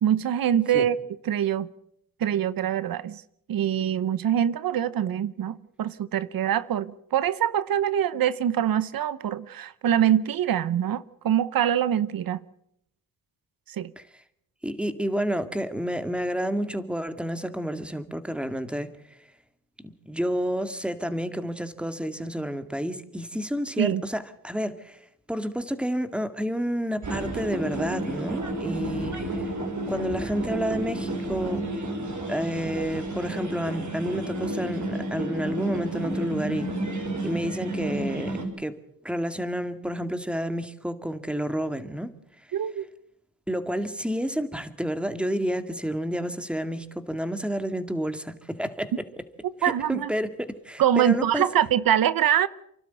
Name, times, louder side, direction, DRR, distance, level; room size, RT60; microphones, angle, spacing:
voice 1, 0.0-1.0 1.2-1.7 2.2-3.2 3.5-12.4 13.7-13.9 23.8-24.0 42.5-42.8 49.6-50.1 50.8-52.5, right 10 dB, 80° right, 0.9 m, -24 dB
voice 2, 14.6-18.9 20.1-25.0 25.3-29.5 29.9-31.6 32.3-38.8 39.0-42.1 43.5-49.1 49.6-51.4, equal, 5° right, 2.3 m, -30 dB
sound 1, 27.0-38.4, right 1 dB, 55° right, 5.6 m, -31 dB
29.0 x 12.5 x 9.4 m
cardioid pair, 65°, 34 cm